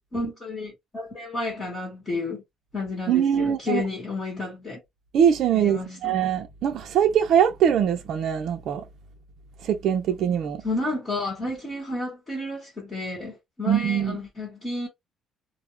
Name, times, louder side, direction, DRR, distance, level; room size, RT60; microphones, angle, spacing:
voice 1, 0.1-2.4 2.7-4.8 5.5-6.1 10.1-10.2 10.6-14.9, left 2 dB, 25° left, 1.0 m, -31 dB
voice 2, 3.1-3.8 5.1-8.8 9.6-10.6 13.7-14.2, right 9 dB, 55° right, 0.5 m, -22 dB
2.3 x 2.1 x 3.0 m
cardioid pair, 165°, 0 cm